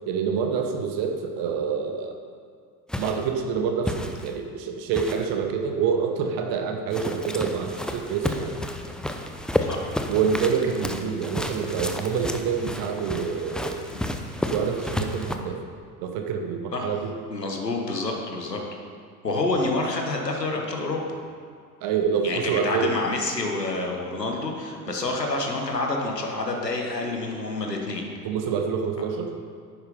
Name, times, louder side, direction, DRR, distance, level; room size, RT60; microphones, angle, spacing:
voice 1, 0.1-2.1 3.0-8.5 10.1-13.8 14.5-15.6 16.0-17.1 21.8-22.9 24.8-25.0 28.2-29.3, right 6 dB, 45° right, 4 dB, 1.3 m, -27 dB
sound 1, 2.9-3.3 3.9-4.4 4.9-5.3 6.9-15.4, left 1 dB, ahead, 0.6 m, -31 dB
voice 2, 17.3-18.6 19.2-21.2 22.2-28.0, left 2 dB, 85° left, 1 dB, 1.5 m, -28 dB
10.5 x 9.3 x 5.3 m, 2.2 s
figure-of-eight pair, 70°, 48 cm